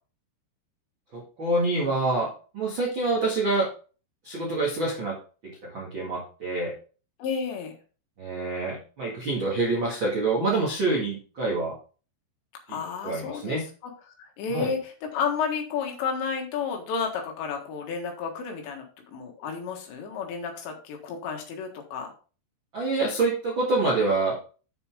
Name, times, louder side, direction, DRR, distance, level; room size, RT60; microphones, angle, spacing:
voice 1, 1.1-3.7 4.2-5.2 5.4-6.7 8.2-11.8 12.7-13.6 14.5-14.7 22.7-24.5, right 2 dB, 80° right, -3 dB, 1.1 m, -27 dB
voice 2, 7.2-7.7 12.7-13.6 14.2-22.1, left 6 dB, 70° left, 2 dB, 3.5 m, -31 dB
8.5 x 6.9 x 3.5 m, 0.36 s
omnidirectional pair, 5.8 m